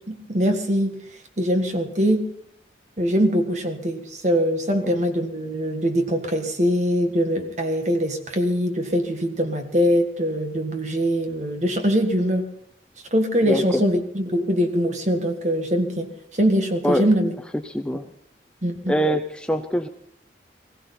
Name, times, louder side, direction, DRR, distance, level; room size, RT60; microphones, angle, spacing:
voice 1, 0.1-0.9 1.4-2.3 3.0-12.5 13.1-16.1 16.3-17.3 18.6-18.9, equal, 40° right, 5 dB, 1.8 m, -22 dB
voice 2, 17.6-18.1 18.9-19.9, equal, 5° left, 5 dB, 0.5 m, -24 dB
20.5 x 15.5 x 4.3 m, 0.68 s
head